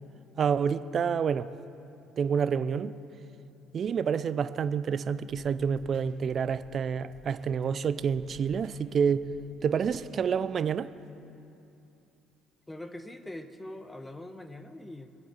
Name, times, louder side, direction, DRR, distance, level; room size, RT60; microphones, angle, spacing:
voice 1, 0.4-1.5 2.2-2.9 3.7-9.2 9.6-10.9, right 7 dB, 50° right, 0.5 m, -28 dB
sound 1, 5.3-7.6 8.0-10.3, right 4 dB, 75° right, 2.8 m, -55 dB
voice 2, 12.7-15.1, left 1 dB, 15° left, 1.1 m, -42 dB
23.0 x 7.9 x 7.0 m
hypercardioid pair, 55°, 0 cm